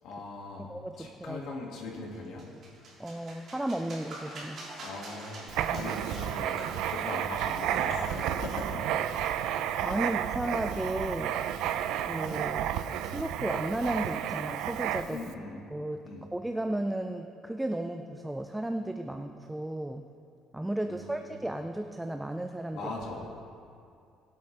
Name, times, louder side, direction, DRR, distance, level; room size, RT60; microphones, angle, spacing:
voice 1, 0.0-0.7 1.0-2.5 4.8-6.6 6.8-8.9 9.9-10.1 15.1-15.6 16.1-16.3 20.9-21.4 22.7-23.3, left 3 dB, 65° left, -1 dB, 2.1 m, -40 dB
voice 2, 0.6-1.4 3.0-4.6 5.7-5.9 9.8-11.3 12.1-12.7 13.0-15.2 15.7-16.0 16.3-20.0 20.5-22.9, right 1 dB, 5° right, 6 dB, 0.3 m, -34 dB
sound 1, 2.1-9.6, right 2 dB, 40° right, 2.5 m, -47 dB
Writing, 5.5-15.3, right 10 dB, 70° right, 0.4 m, -31 dB
19.5 x 8.4 x 3.3 m, 2.4 s
cardioid pair, 175°, 0 cm